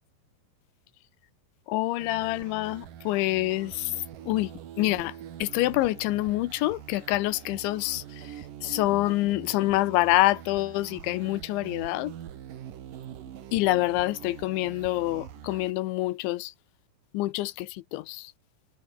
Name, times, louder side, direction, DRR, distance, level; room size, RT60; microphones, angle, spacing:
voice 1, 1.7-3.9 4.3-4.5 4.8-5.1 5.4-8.0 8.6-12.1 13.5-16.5 17.1-18.3, left 18 dB, 85° left, 3.3 m, -26 dB
sound 1, 2.0-15.7, right 10 dB, 55° right, 3.0 m, -44 dB
omnidirectional pair, 5.2 m